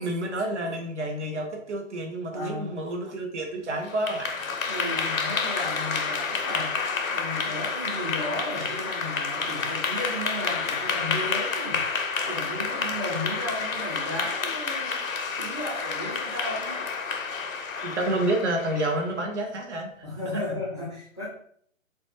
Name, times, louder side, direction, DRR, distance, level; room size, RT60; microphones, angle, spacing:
voice 1, 0.0-4.5 17.8-19.9, right 1 dB, 60° right, 2 dB, 0.7 m, -29 dB
voice 2, 2.3-2.7 4.6-11.8 12.3-15.1 15.4-16.9 20.0-21.3, left 1 dB, 20° left, -6 dB, 0.4 m, -34 dB
Clapping / Applause, 3.8-19.1, left 5 dB, 90° left, 0.5 m, -29 dB
2.3 x 2.1 x 2.9 m, 0.63 s
figure-of-eight pair, 145°, 40 cm